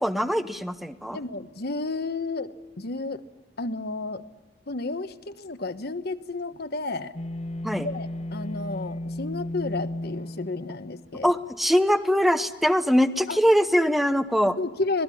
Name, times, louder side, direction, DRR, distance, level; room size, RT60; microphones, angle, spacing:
voice 1, 0.0-1.2 7.6-7.9 11.2-14.6, equal, ahead, 10 dB, 0.9 m, -22 dB
voice 2, 1.1-2.5 2.8-3.2 3.6-4.2 4.7-7.1 7.8-11.3 13.3-13.4 14.6-15.0, left 3 dB, 60° left, 10 dB, 1.2 m, -31 dB
sound 1, 7.1-11.4, left 1 dB, 35° left, 1.0 m, -34 dB
25.5 x 18.5 x 9.8 m, 1.2 s
head